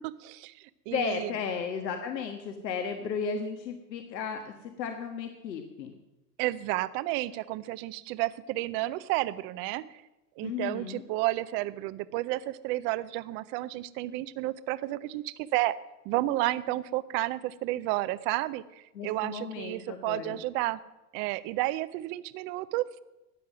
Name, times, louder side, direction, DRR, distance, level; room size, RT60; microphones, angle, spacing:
voice 1, 0.0-1.3 6.4-10.0 10.4-15.8 16.1-18.6 19.0-20.8 21.1-22.9, right 17 dB, 30° right, 16 dB, 0.4 m, -31 dB
voice 2, 0.9-5.9 10.4-11.0 18.9-20.4, left 6 dB, 85° left, 5 dB, 1.5 m, -34 dB
13.5 x 9.2 x 6.1 m, 0.98 s
hypercardioid pair, 115°, 49 cm